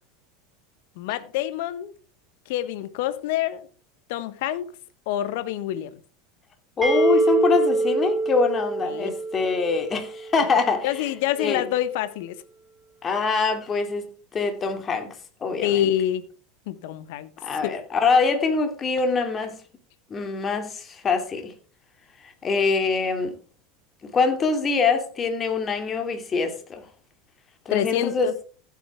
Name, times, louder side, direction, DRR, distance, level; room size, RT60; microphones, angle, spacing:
voice 1, 1.0-1.9 2.5-3.7 4.1-4.7 5.1-5.9 8.9-9.1 10.8-12.4 15.6-16.3 16.7-17.3 17.6-17.7 27.7-28.4, left 12 dB, 60° left, 1.1 m, -27 dB
voice 2, 6.8-11.1 11.4-11.6 13.0-15.1 15.4-15.9 17.4-19.6 20.1-21.5 22.4-23.3 24.0-26.8 27.7-28.3, left 4 dB, 30° left, 2.7 m, -24 dB
sound 1, 6.8-10.5, right 3 dB, 20° right, 4.1 m, -24 dB
15.5 x 8.5 x 3.5 m
figure-of-eight pair, 80°, 0 cm